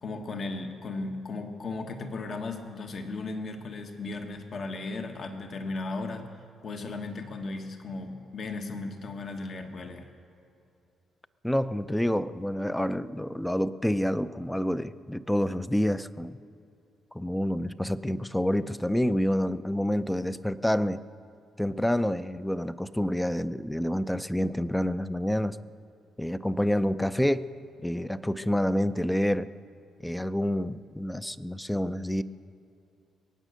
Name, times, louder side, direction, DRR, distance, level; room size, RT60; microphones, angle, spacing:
voice 1, 0.0-6.3 6.6-10.1, left 3 dB, 50° left, 5 dB, 1.4 m, -36 dB
voice 2, 11.4-16.4 17.1-21.0 21.6-25.6 26.2-27.5 27.8-29.5 30.0-32.2, equal, 5° left, 14 dB, 0.5 m, -28 dB
22.5 x 9.1 x 6.5 m, 2.7 s
cardioid pair, 90°, 0 cm